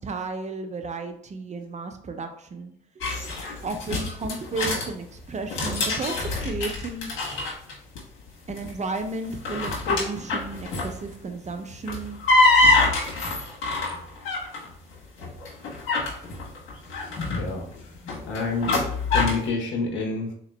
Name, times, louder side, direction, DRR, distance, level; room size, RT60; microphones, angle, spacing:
voice 1, 0.0-7.1 8.5-12.2, right 3 dB, 35° right, 6 dB, 0.6 m, -34 dB
sound 1, 3.0-4.9 5.3-8.0 8.3-8.7 9.2-11.1 11.7-14.7 15.2-19.5, left 2 dB, 90° left, 1.3 m, -25 dB
voice 2, 16.9-18.8 19.1-20.3, left 3 dB, 70° left, 1 dB, 1.1 m, -29 dB
3.8 x 2.9 x 3.3 m, 0.66 s
cardioid pair, 90°, 20 cm